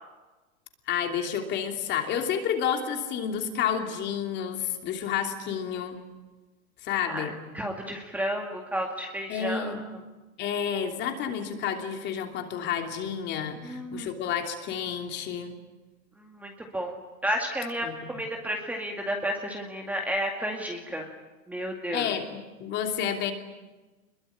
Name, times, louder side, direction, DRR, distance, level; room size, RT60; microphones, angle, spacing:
voice 1, 0.9-6.0 6.8-7.4 9.3-9.8 10.4-15.6 17.8-18.0 21.9-22.3 22.6-23.3, left 8 dB, 25° left, 5 dB, 3.0 m, -30 dB
voice 2, 7.5-9.8 13.6-14.1 16.3-16.9 17.2-21.1 21.5-22.1, equal, 5° right, 2 dB, 2.1 m, -32 dB
26.0 x 22.0 x 9.9 m, 1.2 s
supercardioid pair, 160°, 42 cm